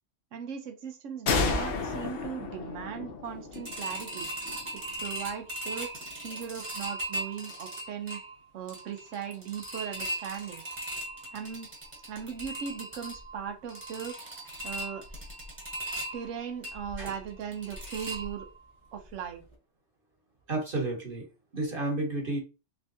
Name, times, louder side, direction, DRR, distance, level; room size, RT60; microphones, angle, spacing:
voice 1, 0.3-4.3 4.7-5.9 6.2-8.2 8.5-10.6 11.3-11.7 12.1-14.2 14.6-15.0 16.1-18.5 18.9-19.4, right 7 dB, 85° right, 6 dB, 1.1 m, -38 dB
sound 1, 1.3-4.8, left 4 dB, 55° left, 0.9 m, -32 dB
sound 2, 3.5-18.7 19.1-19.2 19.5-19.6, right 1 dB, 25° right, 1.1 m, -39 dB
voice 2, 20.5-21.2 21.5-22.4, right 2 dB, 50° right, 1 dB, 1.3 m, -31 dB
3.8 x 3.4 x 2.7 m, 0.29 s
omnidirectional pair, 1.3 m